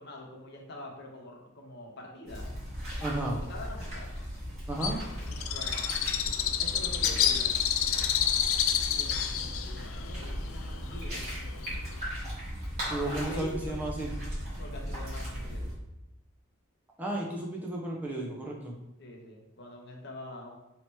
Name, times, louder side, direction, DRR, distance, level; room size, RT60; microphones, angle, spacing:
voice 1, 0.0-2.5 3.1-4.1 5.5-5.8 6.6-7.5 8.8-11.3 13.0-13.7 14.6-15.8 19.0-20.6, left 1 dB, 50° left, 0 dB, 0.8 m, -45 dB
sound 1, 2.3-15.7, equal, 30° right, 1.5 m, -37 dB
voice 2, 3.0-3.4 4.7-5.0 12.9-14.1 17.0-18.8, right 1 dB, 5° right, -2 dB, 0.6 m, -33 dB
Bird, 4.8-12.0, left 9 dB, 65° left, 0.3 m, -29 dB
3.1 x 2.9 x 4.5 m, 0.91 s
head